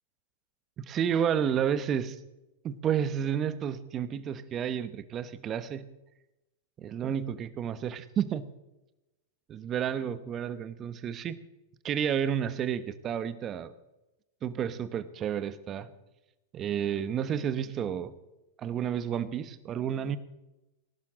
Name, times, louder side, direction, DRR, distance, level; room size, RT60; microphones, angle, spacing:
voice 1, 0.8-2.2 2.6-5.9 6.8-8.5 9.5-11.4 11.8-13.7 14.4-15.9 16.5-18.1 18.6-20.2, right 8 dB, 30° right, 13 dB, 1.1 m, -31 dB
19.0 x 11.5 x 3.8 m, 0.97 s
hypercardioid pair, 120°, 0 cm